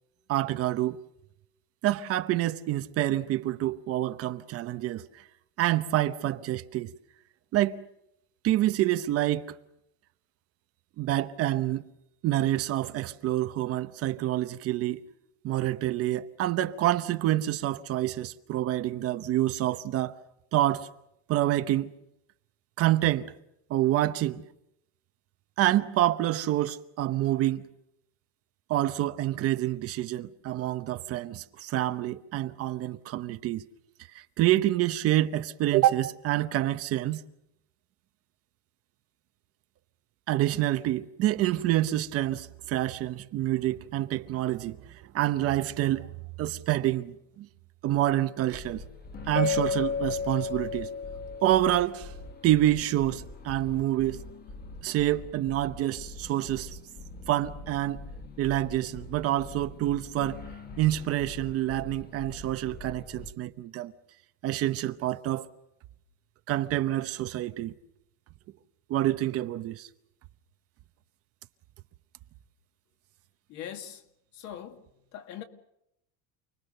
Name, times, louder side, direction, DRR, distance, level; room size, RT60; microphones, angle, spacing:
voice 1, 0.3-1.0 1.8-5.2 5.6-6.9 7.5-7.8 8.4-9.5 11.0-11.9 12.2-15.0 15.4-20.2 20.5-20.9 21.3-21.9 22.8-23.3 23.7-24.4 25.6-27.7 28.7-33.6 34.1-37.2 40.3-46.1 46.4-47.5 47.8-48.8 49.3-50.9 51.4-52.1 52.4-54.2 54.8-56.8 57.3-58.0 58.4-60.4 60.8-63.9 64.4-65.5 66.5-67.7 68.9-69.9, right 14 dB, 40° right, 0.9 m, -27 dB
sound 1, 48.5-63.3, left 2 dB, 25° left, 1.5 m, -44 dB
Mallet percussion, 49.3-52.3, left 6 dB, 75° left, 2.0 m, -32 dB
voice 2, 73.5-74.0 74.3-75.4, left 10 dB, 50° left, 2.4 m, -42 dB
29.5 x 21.0 x 6.7 m
cardioid pair, 170°, 37 cm